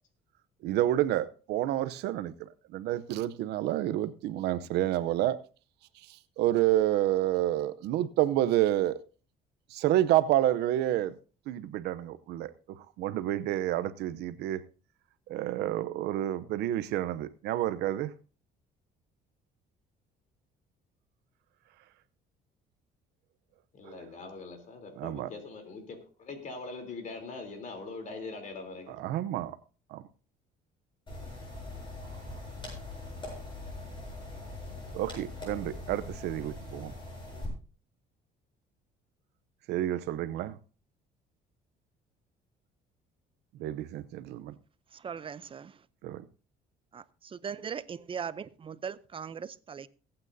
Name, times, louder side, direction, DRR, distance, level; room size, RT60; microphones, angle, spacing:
voice 1, 0.6-5.4 5.9-9.0 9.7-11.2 11.5-14.6 15.3-18.1 23.8-24.0 25.0-25.3 28.9-29.6 29.9-30.0 32.1-32.2 34.9-36.9 39.7-40.6 43.5-44.6 46.0-46.2, right 13 dB, 85° right, 15 dB, 0.7 m, -29 dB
voice 2, 23.7-29.0, left 3 dB, 50° left, 5 dB, 3.4 m, -42 dB
sound 1, 31.1-37.5, left 2 dB, 30° left, 7.8 m, -42 dB
voice 3, 44.9-45.9 46.9-49.9, right 7 dB, 30° right, 17 dB, 0.6 m, -39 dB
22.5 x 8.9 x 2.7 m, 0.36 s
cardioid pair, 110°, 17 cm